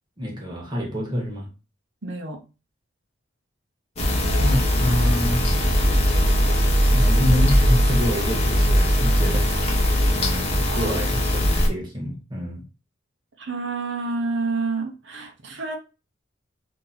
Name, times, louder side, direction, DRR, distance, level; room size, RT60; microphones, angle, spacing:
voice 1, 0.2-1.5 4.4-5.4 6.9-9.9 10.1-12.6, equal, 25° right, 1.1 m, -27 dB
voice 2, 2.0-2.4 10.7-11.0 13.4-15.8, right 3 dB, 65° right, 0.9 m, -29 dB
sound 1, 4.0-11.7, equal, 35° left, 1.0 m, -20 dB
2.9 x 2.8 x 3.8 m
head